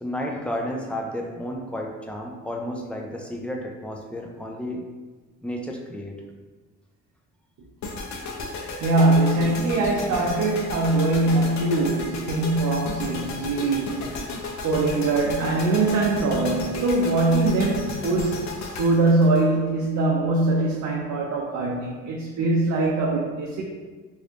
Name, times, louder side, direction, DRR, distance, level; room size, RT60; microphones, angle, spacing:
voice 1, 0.0-4.8 5.4-6.2, equal, 5° left, 0 dB, 0.5 m, -32 dB
sound 1, 7.8-20.0, left 3 dB, 65° left, 0.6 m, -34 dB
voice 2, 8.8-14.2 14.6-18.5 18.7-23.6, right 2 dB, 65° right, -3 dB, 0.6 m, -22 dB
3.0 x 2.6 x 3.3 m, 1.3 s
cardioid pair, 90°, 30 cm